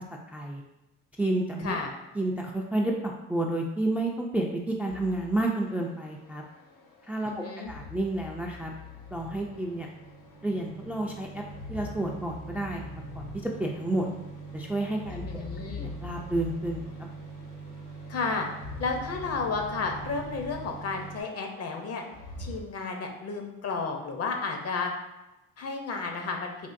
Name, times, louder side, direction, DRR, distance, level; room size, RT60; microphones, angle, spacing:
voice 1, 1.2-1.8 2.2-6.4 7.1-7.3 7.7-8.7 9.1-9.9 10.4-11.3 11.7-14.1 14.5-15.4 15.8-16.8, right 2 dB, 5° right, 0 dB, 0.3 m, -30 dB
sound 1, 4.9-22.6, left 4 dB, 85° left, 0.7 m, -45 dB
voice 2, 7.3-7.7 15.1-15.9 18.1-18.5 18.8-22.0 22.4-24.9 25.6-26.5, left 4 dB, 50° left, 3 dB, 0.7 m, -32 dB
sound 2, 9.4-21.2, right 4 dB, 65° right, 0.8 m, -44 dB
3.5 x 2.5 x 2.5 m, 0.96 s
supercardioid pair, 70°, 32 cm